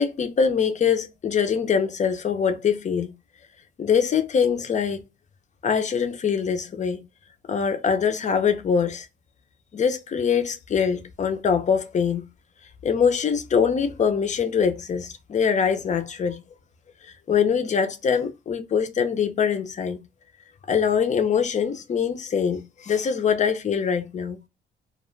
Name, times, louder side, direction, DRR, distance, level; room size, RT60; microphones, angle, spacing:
voice 1, 0.0-3.1 3.8-5.0 5.6-7.1 7.5-9.1 9.7-12.2 12.8-16.4 17.3-20.0 20.7-24.4, left 6 dB, 35° left, 0.5 m, -23 dB
2.3 x 2.1 x 3.0 m
cardioid pair, 90°, 20 cm